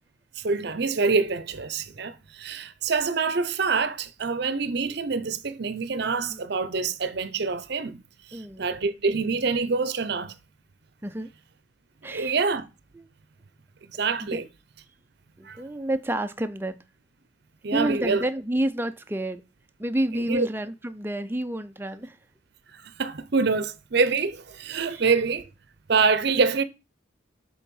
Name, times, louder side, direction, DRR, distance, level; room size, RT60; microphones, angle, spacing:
voice 1, 0.4-8.0 8.3-10.3 12.1-12.7 13.9-14.5 15.4-15.6 17.6-18.2 20.3-20.5 22.7-25.5 25.9-26.6, right 4 dB, 55° right, 0.6 m, -26 dB
voice 2, 8.3-8.7 11.0-11.3 12.0-12.4 12.9-13.1 14.2-14.4 15.4-16.8 17.7-19.4 19.8-22.2 24.9-25.0, right 1 dB, 10° right, 0.4 m, -29 dB
7.4 x 3.9 x 5.3 m
head